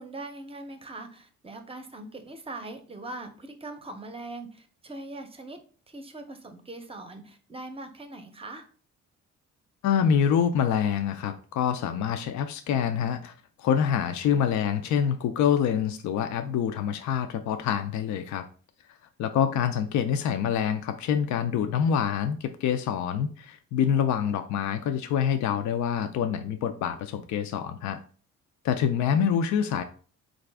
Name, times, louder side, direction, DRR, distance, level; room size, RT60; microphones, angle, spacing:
voice 1, 0.0-5.6 5.9-8.7, right 2 dB, 20° right, 7 dB, 0.6 m, -41 dB
voice 2, 9.8-13.3 13.6-18.4 19.2-28.0 28.6-29.8, left 8 dB, 70° left, 8 dB, 0.4 m, -26 dB
3.9 x 2.5 x 3.3 m, 0.41 s
cardioid pair, 90°, 30 cm